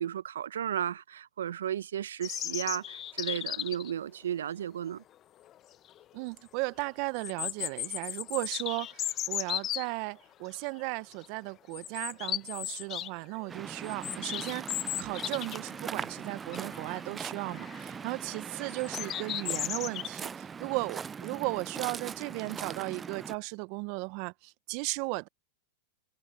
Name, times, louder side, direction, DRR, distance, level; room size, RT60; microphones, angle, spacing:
voice 1, 0.0-5.0, right 10 dB, 75° right, 0.8 m, -34 dB
Robin singing, 2.2-3.9 5.5-5.6 6.0-6.1 7.2-9.8 10.5-10.8 11.1-11.3 11.7-13.1 13.4-15.7 16.0-16.1 16.5-17.0 17.5-17.8 18.7-20.1, left 12 dB, 35° left, 0.9 m, -35 dB
voice 2, 6.1-25.3, right 29 dB, 50° right, 0.8 m, -36 dB
Waves surf, 13.5-23.3, right 6 dB, 20° right, 0.3 m, -41 dB
hypercardioid pair, 105°, 0 cm